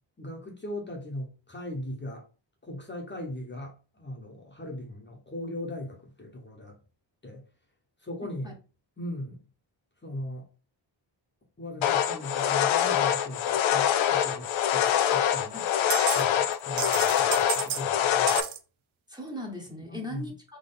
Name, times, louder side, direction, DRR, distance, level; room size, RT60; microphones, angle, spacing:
voice 1, 0.2-2.2 2.6-6.8 7.2-7.4 8.0-8.6 9.0-9.4 10.0-10.5 11.6-15.6 16.1-18.4 19.9-20.3, left 1 dB, 25° left, 1.0 m, -39 dB
voice 2, 8.2-8.5 15.5-15.7 19.1-20.6, left 1 dB, 10° right, 1.1 m, -39 dB
sound 1, 11.8-18.4, left 10 dB, 80° left, 0.6 m, -25 dB
sound 2, 14.9-15.0 15.9-16.3 16.5-17.8 18.3-18.6, right 11 dB, 85° right, 0.7 m, -31 dB
3.8 x 3.1 x 3.8 m
wide cardioid pair, 140°, 46 cm